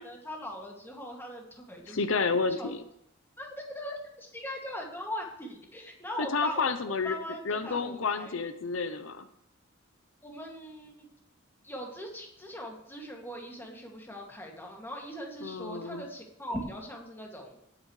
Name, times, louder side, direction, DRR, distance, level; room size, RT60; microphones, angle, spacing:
voice 1, 0.0-2.1 2.6-2.7 3.4-6.7 7.0-8.4 10.2-11.1 11.6-17.6, equal, 10° left, 0 dB, 2.3 m, -40 dB
voice 2, 1.9-2.8 6.2-7.2 7.4-9.3 15.4-16.0, left 4 dB, 70° left, 10 dB, 0.7 m, -30 dB
19.0 x 8.8 x 3.2 m, 0.76 s
head